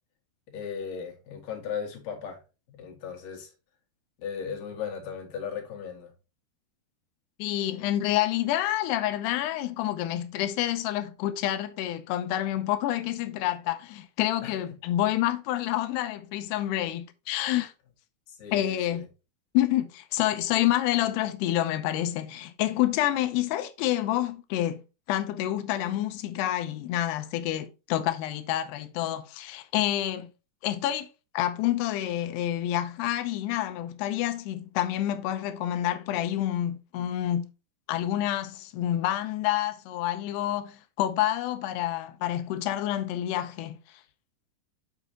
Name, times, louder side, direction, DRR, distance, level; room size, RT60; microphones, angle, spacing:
voice 1, 0.5-2.4 2.7-3.5 4.2-6.1 14.4-14.5 18.3-19.0, left 7 dB, 60° left, 3.3 m, -36 dB
voice 2, 7.4-17.7 18.5-19.1 19.5-24.8 25.1-30.3 30.6-31.1 31.3-37.5 37.9-43.8, left 13 dB, 90° left, 2.8 m, -28 dB
7.3 x 6.7 x 2.9 m
omnidirectional pair, 4.7 m